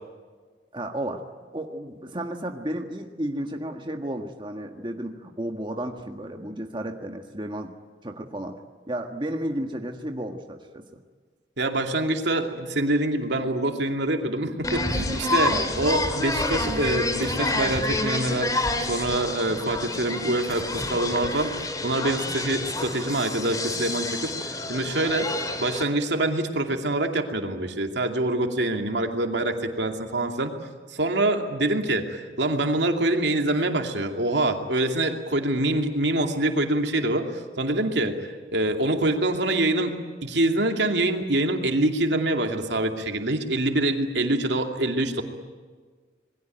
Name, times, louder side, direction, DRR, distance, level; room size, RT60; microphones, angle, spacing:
voice 1, 0.7-1.2 1.5-7.7 8.0-11.0, right 1 dB, 25° right, 4 dB, 1.6 m, -33 dB
voice 2, 11.6-18.5 18.9-25.3 25.6-30.5 30.9-39.9 40.2-45.2, right 1 dB, 80° right, 4 dB, 2.5 m, -25 dB
sound 1, 14.6-25.8, left 2 dB, 20° left, 2.2 m, -28 dB
27.0 x 21.0 x 9.2 m, 1.5 s
head